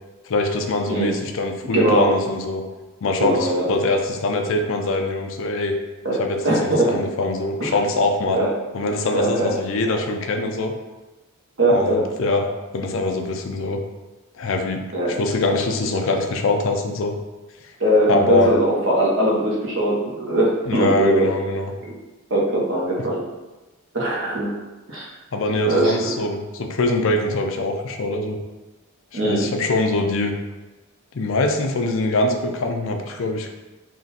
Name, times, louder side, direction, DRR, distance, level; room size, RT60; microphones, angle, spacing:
voice 1, 0.3-2.6 3.0-5.8 6.2-8.4 8.7-10.7 11.7-13.8 14.3-14.8 15.1-17.1 18.1-18.6 20.7-21.7 25.3-28.4 29.1-30.3 31.1-33.5, left 2 dB, 60° left, 4 dB, 0.5 m, -23 dB
voice 2, 1.7-2.1 3.2-3.7 6.0-6.2 6.4-7.0 7.6-7.7 8.3-8.5 9.1-9.5 11.6-12.0 14.9-15.1 17.8-21.3 22.3-23.2 23.9-24.6 24.9-25.1 25.7-26.1 29.1-29.5, right 1 dB, 60° right, -4 dB, 1.0 m, -20 dB
3.7 x 2.5 x 4.0 m, 1.1 s
head